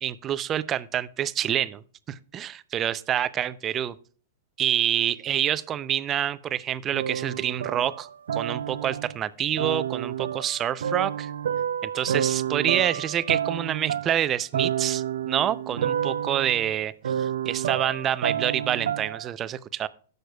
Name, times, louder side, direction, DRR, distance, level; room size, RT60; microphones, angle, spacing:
voice 1, 0.0-1.8 2.1-3.9 4.6-11.3 11.8-19.9, right 10 dB, 25° right, 15 dB, 0.5 m, -27 dB
sound 1, 6.9-9.2 9.6-19.3, right 9 dB, 80° right, 0.3 m, -29 dB
17.5 x 6.6 x 2.3 m, 0.42 s
hypercardioid pair, 135°, 0 cm